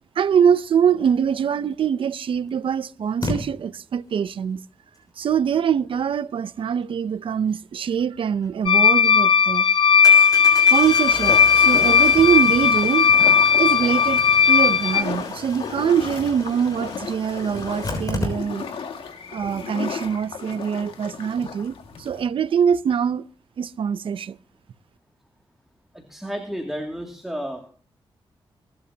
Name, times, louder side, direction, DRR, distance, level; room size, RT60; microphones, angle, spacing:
voice 1, 0.2-4.6 5.2-9.7 10.7-13.2 13.6-18.7 19.3-23.2 23.6-24.4, right 8 dB, 75° right, 0.7 m, -23 dB
Engine starting, 1.7-1.8 3.2-3.4 8.4-8.5 8.9-9.0 10.0-18.8 19.1-19.2 19.4-19.5, left 2 dB, 40° left, 6.5 m, -34 dB
sound 1, 8.7-15.0, left 6 dB, 60° left, 0.6 m, -16 dB
sound 2, 11.3-22.3, left 6 dB, 85° left, 2.0 m, -34 dB
voice 2, 25.9-27.7, equal, 5° right, 2.5 m, -32 dB
22.5 x 12.0 x 2.9 m
cardioid pair, 75°, 9 cm